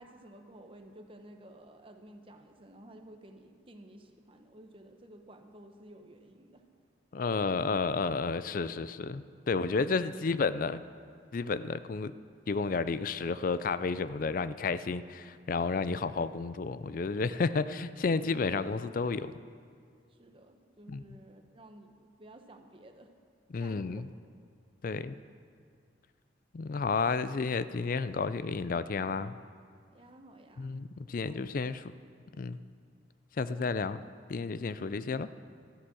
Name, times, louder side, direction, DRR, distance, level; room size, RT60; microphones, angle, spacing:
voice 1, 0.0-6.7 15.9-16.1 20.1-23.1 23.6-24.1 29.9-30.7 31.2-31.5 33.4-33.7 34.7-34.8, right 1 dB, 30° right, 5 dB, 0.9 m, -53 dB
voice 2, 7.1-10.8 11.3-12.1 12.5-19.3 20.9-21.0 23.5-24.1 24.8-25.2 26.5-29.3 30.6-31.8 32.4-32.6 33.4-34.0 34.3-35.3, left 4 dB, 50° left, 14 dB, 0.4 m, -31 dB
13.0 x 9.8 x 6.2 m, 2.2 s
head